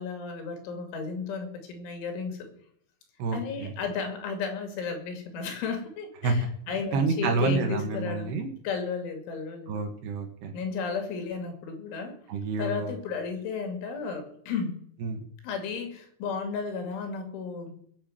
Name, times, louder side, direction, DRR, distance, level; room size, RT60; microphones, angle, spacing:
voice 1, 0.0-2.5 3.3-8.3 8.6-9.8 10.5-12.2 12.6-14.8 15.4-17.7, left 5 dB, 80° left, 5 dB, 4.8 m, -33 dB
voice 2, 3.2-3.7 6.2-6.3 6.9-8.5 9.7-10.6 12.3-12.9 15.0-15.2, right 4 dB, 65° right, 5 dB, 3.5 m, -28 dB
20.0 x 7.0 x 7.6 m, 0.66 s
omnidirectional pair, 5.4 m